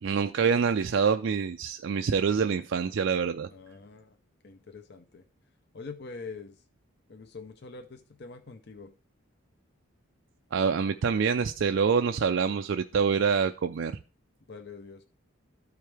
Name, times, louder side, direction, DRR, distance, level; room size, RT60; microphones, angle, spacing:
voice 1, 0.0-3.5 10.5-13.9, right 6 dB, 60° right, 7 dB, 0.4 m, -26 dB
voice 2, 3.5-4.2 4.4-5.2 5.7-6.6 7.1-8.9 14.5-15.0, left 4 dB, 50° left, 6 dB, 0.5 m, -44 dB
13.0 x 4.7 x 3.4 m, 0.35 s
head